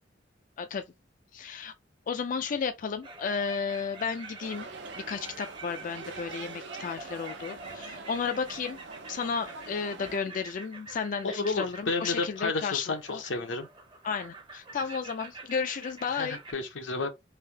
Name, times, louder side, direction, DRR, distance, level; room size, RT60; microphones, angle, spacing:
voice 1, 1.3-1.7 2.1-4.7 5.1-8.8 9.1-13.2 14.0-16.4, left 6 dB, 45° left, 0.3 m, -33 dB
sound 1, 3.0-16.5, right 3 dB, 25° right, 0.7 m, -47 dB
sound 2, 4.4-10.2, right 4 dB, 70° right, 0.6 m, -44 dB
voice 2, 11.2-13.7 16.1-17.1, left 3 dB, 85° left, 0.8 m, -31 dB
3.3 x 2.6 x 3.3 m
head